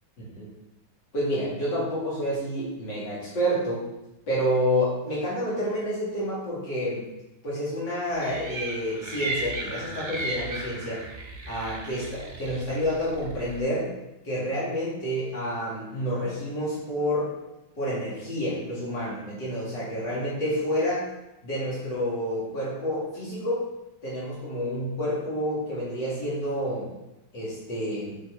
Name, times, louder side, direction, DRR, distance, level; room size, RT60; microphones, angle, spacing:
voice 1, 0.2-0.5 1.1-3.9 4.3-7.0 7.4-11.0 11.5-13.9 14.2-17.3 17.8-21.0 21.4-23.7 24.0-26.9 27.3-28.2, equal, 65° left, -8 dB, 3.1 m, -29 dB
sound 1, 8.2-13.6, right 2 dB, 50° right, 0.5 m, -35 dB
7.5 x 4.7 x 3.6 m, 0.93 s
omnidirectional pair, 2.1 m